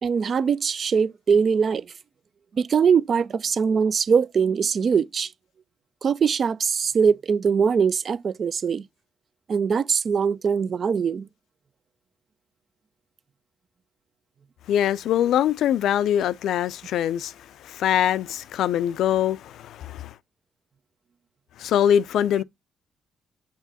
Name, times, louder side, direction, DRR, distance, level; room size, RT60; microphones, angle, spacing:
voice 1, 0.0-1.9 2.5-5.3 6.0-8.9 9.5-11.3, right 6 dB, 50° right, 0.4 m, -22 dB
voice 2, 14.7-17.3 17.6-20.1 21.6-22.4, left 10 dB, 80° left, 0.3 m, -23 dB
6.3 x 5.9 x 2.7 m
cardioid pair, 90°, 0 cm